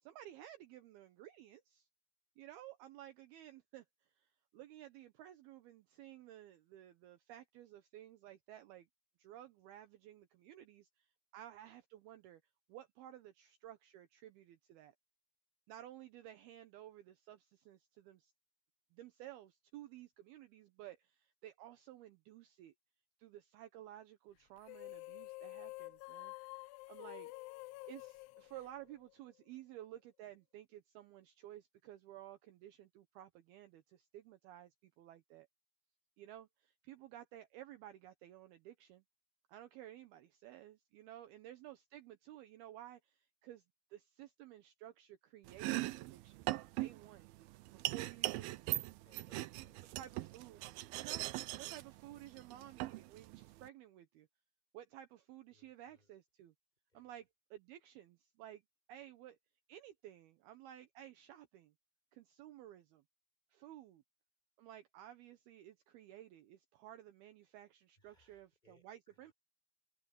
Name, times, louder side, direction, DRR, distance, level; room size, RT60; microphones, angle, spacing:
voice 1, 0.0-1.9 2.4-3.9 4.2-8.9 9.2-12.4 12.7-14.9 15.7-18.3 18.9-22.7 23.2-26.3 26.9-27.3 27.9-35.5 36.2-39.0 39.5-43.6 43.9-45.7 46.0-46.5 46.8-47.3 47.7-48.8 50.0-50.6 50.9-51.3 51.5-54.3 54.7-56.5 56.9-58.6 58.9-59.4 59.7-61.7 62.1-63.0 63.5-64.0 64.6-69.3, right 12 dB, 75° right, 2.6 m, -54 dB
sound 1, 24.6-29.3, left 23 dB, 85° left, 2.4 m, -49 dB
Domestic sounds home sounds, 45.5-53.7, right 18 dB, 90° right, 2.1 m, -41 dB
voice 2, 49.0-50.2 55.5-56.1 56.9-57.1 68.0-69.3, equal, 10° left, 6.8 m, -72 dB
omnidirectional pair, 5.0 m